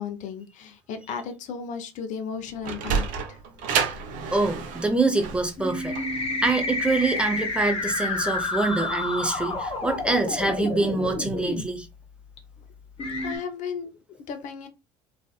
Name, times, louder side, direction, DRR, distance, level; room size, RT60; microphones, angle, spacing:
voice 1, 0.0-3.4 13.2-14.7, left 6 dB, 55° left, 0.5 m, -35 dB
Sliding door, 2.3-7.5, right 6 dB, 60° right, 0.6 m, -30 dB
voice 2, 4.3-11.9, right 2 dB, 5° right, 0.7 m, -25 dB
sound 1, 5.6-11.6 12.4-12.5 13.0-13.4, left 3 dB, 40° left, 1.0 m, -29 dB
2.5 x 2.4 x 2.3 m
hypercardioid pair, 65°, 15 cm